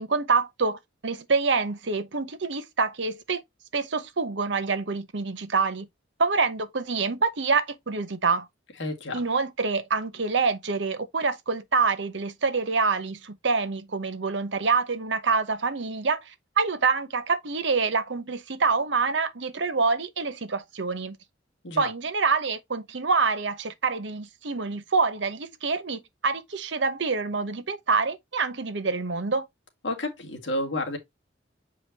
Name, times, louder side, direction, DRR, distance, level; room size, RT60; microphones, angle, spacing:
voice 1, 0.0-3.4 3.7-5.9 6.2-8.5 9.1-21.2 21.8-29.5, right 4 dB, 65° right, 0.9 m, -26 dB
voice 2, 8.8-9.2 21.6-21.9 29.8-31.0, left 1 dB, 70° left, 2.0 m, -30 dB
7.2 x 4.9 x 2.9 m
head